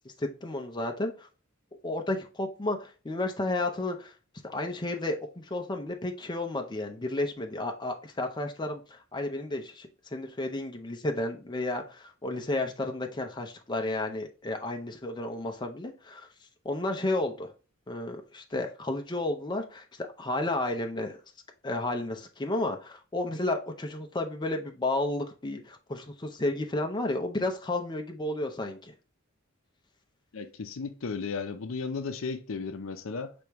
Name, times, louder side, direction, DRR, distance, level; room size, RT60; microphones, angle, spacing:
voice 1, 0.2-1.3 1.8-4.1 4.4-16.3 16.6-17.5 17.9-21.2 21.6-28.9, left 2 dB, 20° left, 0.6 m, -32 dB
voice 2, 30.3-33.3, left 4 dB, 70° left, 0.5 m, -35 dB
4.9 x 3.4 x 3.0 m
head